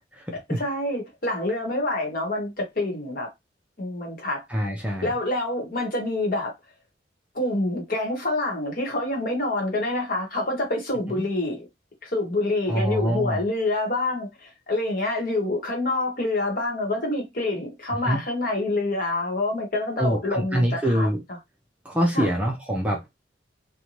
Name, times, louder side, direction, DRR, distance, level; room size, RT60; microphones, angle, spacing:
voice 1, 0.6-3.3 3.8-4.4 5.0-6.5 7.3-11.7 12.0-21.1 22.1-22.3, left 2 dB, 50° left, 1.1 m, -27 dB
voice 2, 4.5-5.1 12.7-13.4 18.0-18.2 20.0-21.2 21.8-23.0, equal, 5° right, 0.5 m, -24 dB
2.6 x 2.2 x 3.0 m
head